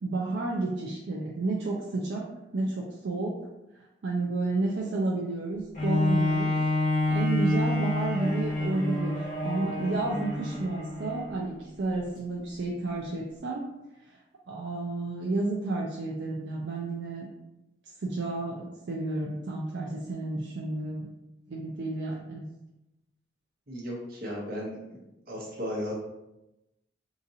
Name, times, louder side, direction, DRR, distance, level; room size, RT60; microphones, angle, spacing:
voice 1, 0.0-2.2 2.5-3.4 4.0-6.5 7.1-13.7 14.0-14.2 14.5-17.3 18.0-21.1 21.5-22.4, right 2 dB, 65° right, -3 dB, 0.4 m, -31 dB
Bowed string instrument, 5.7-11.4 12.0-12.1, left 2 dB, 45° left, 1.0 m, -28 dB
voice 2, 23.7-25.0 25.3-25.9, equal, 50° right, -3 dB, 0.9 m, -35 dB
3.8 x 2.5 x 2.7 m, 0.94 s
head